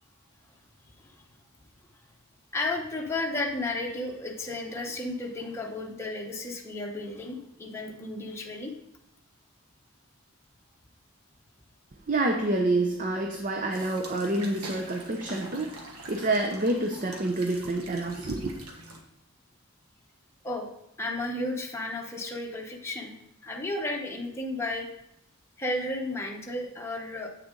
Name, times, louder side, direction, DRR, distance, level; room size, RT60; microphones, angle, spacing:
voice 1, 2.5-8.7 20.4-20.7 21.0-23.1 23.4-24.9 25.6-27.3, left 2 dB, 10° left, -1 dB, 0.9 m, -33 dB
voice 2, 12.1-18.5, right 2 dB, 35° right, 3 dB, 0.6 m, -28 dB
sound 1, 13.7-19.0, right 2 dB, 90° right, 1.4 m, -45 dB
8.3 x 6.7 x 3.8 m, 0.81 s
head